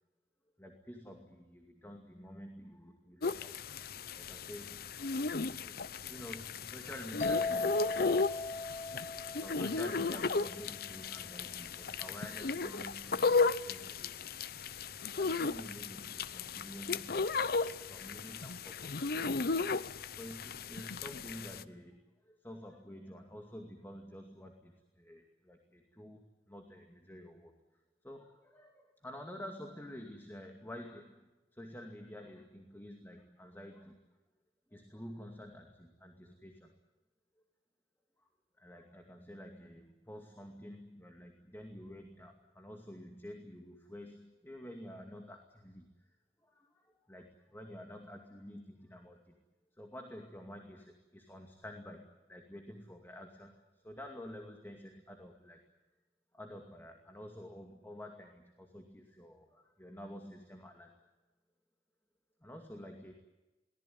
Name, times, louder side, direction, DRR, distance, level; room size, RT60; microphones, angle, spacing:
voice 1, 0.6-3.7 4.1-4.9 5.4-5.8 6.1-8.8 9.4-14.3 15.1-19.5 19.9-27.5 28.0-34.0 34.7-36.8 38.2-38.3 38.6-46.1 46.4-49.3 49.8-55.6 56.3-61.1 62.4-63.1, equal, 10° left, 3 dB, 2.3 m, -50 dB
sound 1, 3.2-21.6, left 4 dB, 55° left, 0.8 m, -35 dB
sound 2, 7.2-10.8, left 3 dB, 40° left, 2.2 m, -37 dB
23.0 x 19.0 x 9.4 m, 1.1 s
head